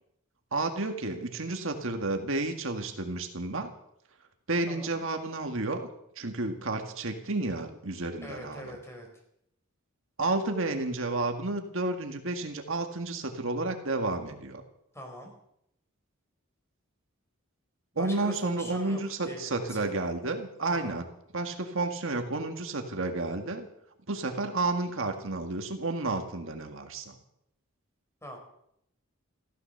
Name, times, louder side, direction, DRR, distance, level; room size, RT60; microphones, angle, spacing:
voice 1, 0.5-3.7 4.5-5.9 6.2-8.8 10.2-14.6 18.0-21.0 21.3-23.7 24.1-27.1, right 2 dB, 65° right, 5 dB, 1.9 m, -31 dB
voice 2, 4.7-5.0 8.2-9.1 14.9-15.3 17.9-20.1 20.7-21.0 28.2-28.4, equal, 15° left, 2 dB, 4.4 m, -43 dB
15.0 x 14.0 x 6.8 m, 0.77 s
head